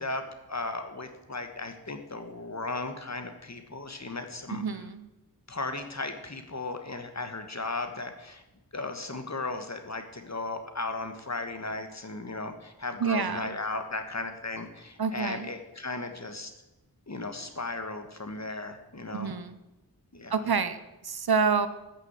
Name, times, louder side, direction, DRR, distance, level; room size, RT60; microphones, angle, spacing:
voice 1, 0.0-4.6 5.5-8.4 8.7-16.5 17.1-19.3 20.1-20.4, left 3 dB, 45° left, 7 dB, 1.6 m, -36 dB
voice 2, 4.5-5.1 13.0-13.6 15.0-15.5 19.1-19.6 20.3-20.8 21.0-21.7, right 5 dB, 70° right, 11 dB, 0.9 m, -28 dB
14.0 x 6.4 x 8.2 m, 0.99 s
wide cardioid pair, 60°, 39 cm